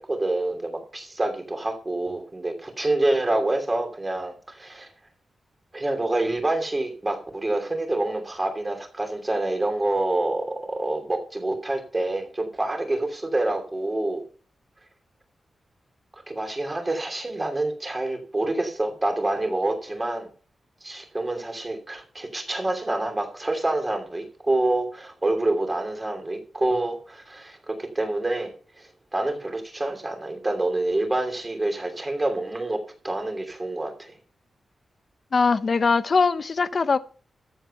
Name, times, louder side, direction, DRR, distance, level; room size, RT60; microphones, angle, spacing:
voice 1, 0.0-4.9 5.7-14.2 16.3-20.3 20.8-28.5 28.8-34.1, right 2 dB, 20° right, 2.9 m, -27 dB
voice 2, 35.3-37.0, left 4 dB, 40° left, 0.6 m, -21 dB
14.0 x 8.1 x 5.5 m
wide cardioid pair, 160°, 0 cm